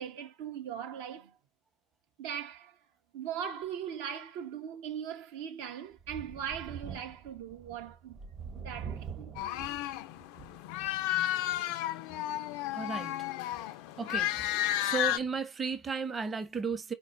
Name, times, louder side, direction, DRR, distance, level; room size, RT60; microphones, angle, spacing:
voice 1, 0.0-1.3 2.2-2.8 3.1-8.2 8.5-9.3, right 8 dB, 65° right, 0.6 m, -39 dB
Thunder, 6.0-11.1 11.5-11.6 13.0-13.1, right 6 dB, 45° right, 1.1 m, -44 dB
sound 1, 9.4-15.2, left 13 dB, 65° left, 0.3 m, -32 dB
voice 2, 12.7-13.1 14.0-14.4 14.8-16.9, right 5 dB, 25° right, 0.8 m, -34 dB
4.2 x 2.2 x 2.6 m
hypercardioid pair, 70°, 0 cm